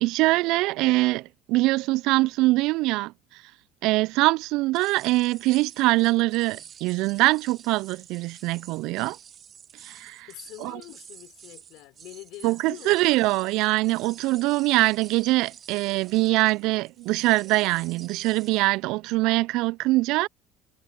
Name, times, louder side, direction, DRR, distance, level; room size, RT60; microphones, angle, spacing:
voice 1, 0.0-3.1 3.8-9.2 9.8-10.3 10.6-10.8 12.4-20.3, right 20 dB, 65° right, 0.7 m, -23 dB
sound 1, 4.7-18.7, right 8 dB, 40° right, 4.9 m, -49 dB
voice 2, 10.3-13.1, left 20 dB, 65° left, 4.5 m, -44 dB
hypercardioid pair, 60°, 0 cm